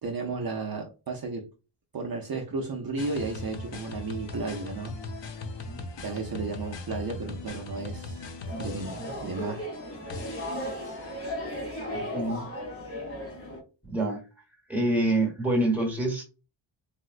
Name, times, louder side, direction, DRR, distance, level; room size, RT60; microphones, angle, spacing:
voice 1, 0.0-1.5 1.9-5.0 6.0-10.0, right 3 dB, 50° right, 0 dB, 0.5 m, -34 dB
sound 1, 3.0-11.3, left 2 dB, 60° left, 0.6 m, -39 dB
sound 2, 8.5-13.6, equal, 30° left, 0.7 m, -36 dB
voice 2, 11.9-12.4 13.8-14.2 14.7-16.2, right 1 dB, 5° right, -2 dB, 1.0 m, -26 dB
4.2 x 2.1 x 2.4 m, 0.32 s
wide cardioid pair, 175°, 49 cm